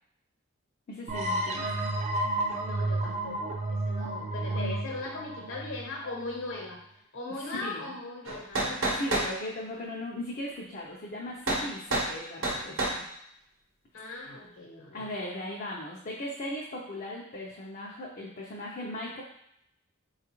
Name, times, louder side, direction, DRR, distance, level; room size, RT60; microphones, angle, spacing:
voice 1, 0.9-1.7 7.6-7.9 8.9-13.0 14.9-19.2, left 1 dB, 45° left, -4 dB, 0.5 m, -38 dB
sound 1, 1.1-6.6, right 2 dB, 35° right, 0.3 m, -31 dB
voice 2, 1.6-2.0 2.5-6.8 7.1-9.0 13.9-15.1, left 2 dB, 65° left, -2 dB, 1.0 m, -39 dB
sound 2, 8.3-9.3 11.5-11.7 11.9-12.1 12.4-13.0, right 1 dB, 70° right, 0.8 m, -28 dB
4.0 x 2.4 x 3.0 m, 0.76 s
head